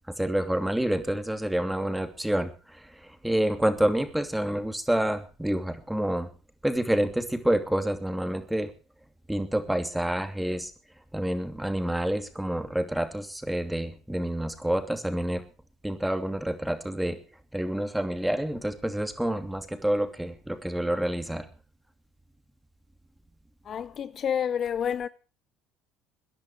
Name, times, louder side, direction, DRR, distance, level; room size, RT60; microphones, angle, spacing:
voice 1, 0.2-6.3 6.6-8.7 9.3-10.7 11.1-15.4 15.8-17.2 17.5-21.5, right 1 dB, 5° right, 2.8 m, -28 dB
voice 2, 23.7-25.1, left 8 dB, 45° left, 0.6 m, -29 dB
22.0 x 10.5 x 4.9 m
hypercardioid pair, 70°, 0 cm